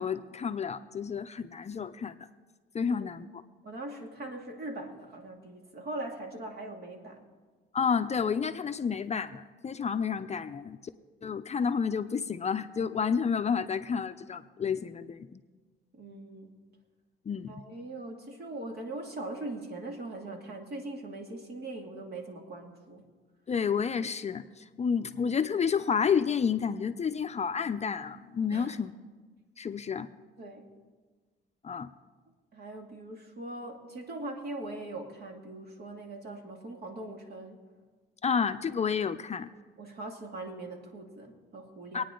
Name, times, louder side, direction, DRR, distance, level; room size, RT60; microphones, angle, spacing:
voice 1, 0.0-2.1 2.7-3.4 7.7-10.8 11.2-15.4 17.3-17.5 23.5-28.9 29.6-30.1 31.6-31.9 38.2-39.5 41.9-42.0, left 6 dB, 35° left, 9 dB, 0.5 m, -30 dB
voice 2, 3.6-7.3 15.9-16.6 17.5-23.1 28.5-28.8 30.4-30.7 32.5-37.6 39.8-42.0, right 2 dB, 55° right, 2 dB, 2.4 m, -41 dB
23.5 x 9.4 x 3.8 m, 1.4 s
cardioid pair, 90°, 20 cm